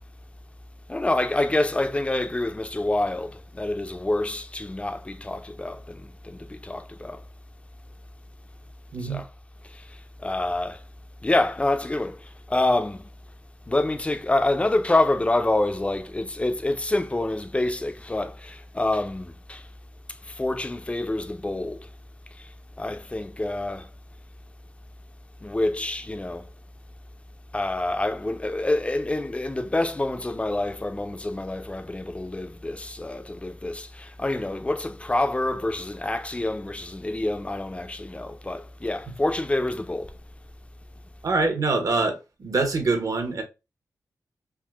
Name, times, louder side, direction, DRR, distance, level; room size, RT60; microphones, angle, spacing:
voice 1, 0.9-7.2 9.1-9.2 10.2-10.8 11.2-12.2 12.5-13.1 13.7-19.6 20.3-21.8 22.8-23.9 25.4-26.4 27.5-40.1, left 2 dB, 15° left, 0.4 m, -27 dB
voice 2, 8.9-9.2 39.1-39.2 41.2-43.4, right 3 dB, 55° right, 0.9 m, -25 dB
3.6 x 2.7 x 2.2 m
cardioid pair, 55°, 7 cm